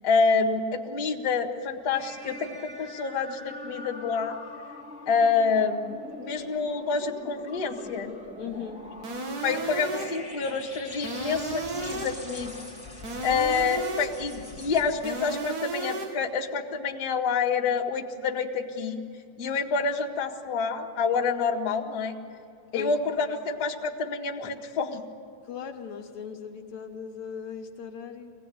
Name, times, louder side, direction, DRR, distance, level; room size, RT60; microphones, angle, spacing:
voice 1, 0.0-4.4 5.1-8.1 9.4-12.7 13.2-19.0 19.4-22.1 22.7-25.0, left 5 dB, 35° left, -1 dB, 1.9 m, -27 dB
sound 1, 1.9-15.7, left 2 dB, 5° right, 1.4 m, -43 dB
voice 2, 8.4-8.8 22.7-22.9 25.4-28.3, left 7 dB, 70° left, 3 dB, 2.4 m, -37 dB
sound 2, 9.0-10.3 11.0-12.3 13.0-14.3 15.0-16.3, right 3 dB, 60° right, 0.9 m, -34 dB
24.0 x 18.5 x 9.3 m, 2.5 s
omnidirectional pair, 3.6 m